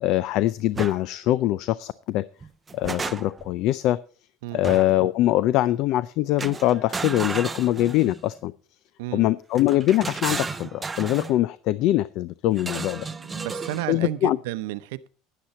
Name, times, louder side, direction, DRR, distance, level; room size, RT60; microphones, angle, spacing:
voice 1, 0.0-2.2 2.7-4.0 4.5-8.5 9.1-13.1 13.9-14.4, left 14 dB, 55° left, 0.4 m, -23 dB
sound 1, 0.7-1.0 2.4-3.5 4.6-5.1 6.4-8.2 9.5-11.3 12.6-13.9, right 4 dB, 15° right, 0.4 m, -33 dB
voice 2, 13.1-15.1, right 14 dB, 85° right, 0.7 m, -32 dB
12.0 x 10.0 x 4.2 m
cardioid pair, 150°, 0 cm